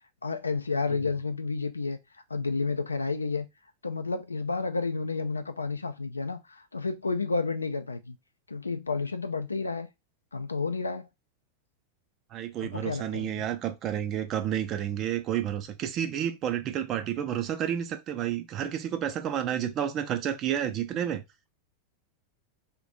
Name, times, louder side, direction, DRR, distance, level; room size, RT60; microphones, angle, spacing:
voice 1, 0.2-2.0 2.3-3.5 3.8-8.2 8.5-9.9 10.3-11.1 12.6-13.4, left 4 dB, 80° left, 0.4 m, -31 dB
voice 2, 12.3-21.2, right 10 dB, 35° right, 0.5 m, -30 dB
2.4 x 2.2 x 3.9 m
figure-of-eight pair, 90°, 0 cm